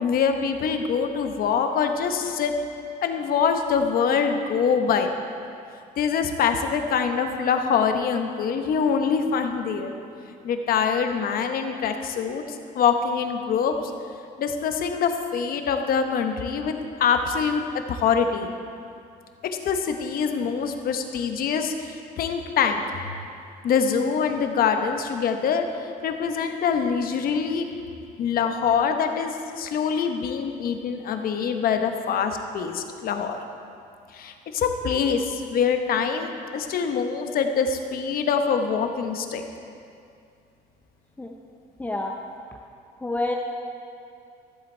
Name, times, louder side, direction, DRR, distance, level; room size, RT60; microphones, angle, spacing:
voice 1, 0.0-2.5 3.0-5.1 6.0-9.9 10.4-13.7 14.4-17.6 17.9-18.5 19.6-22.8 23.6-25.7 26.0-27.7 28.2-33.4 34.1-39.4, left 6 dB, 60° left, 6 dB, 1.0 m, -24 dB
voice 2, 41.8-42.1 43.0-43.4, left 2 dB, 10° left, 1 dB, 0.6 m, -27 dB
13.5 x 7.6 x 4.4 m, 2.4 s
cardioid pair, 110°, 17 cm